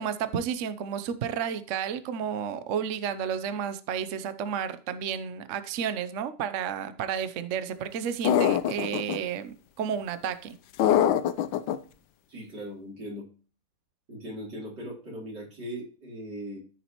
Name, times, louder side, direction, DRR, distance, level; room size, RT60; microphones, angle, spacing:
voice 1, 0.0-10.6, right 8 dB, 80° right, 12 dB, 0.6 m, -31 dB
sound 1, 8.2-9.2 10.8-11.8, left 10 dB, 70° left, 1.2 m, -23 dB
voice 2, 12.3-13.3 14.1-16.6, equal, 55° right, -4 dB, 4.4 m, -39 dB
13.5 x 6.3 x 3.0 m, 0.39 s
omnidirectional pair, 2.3 m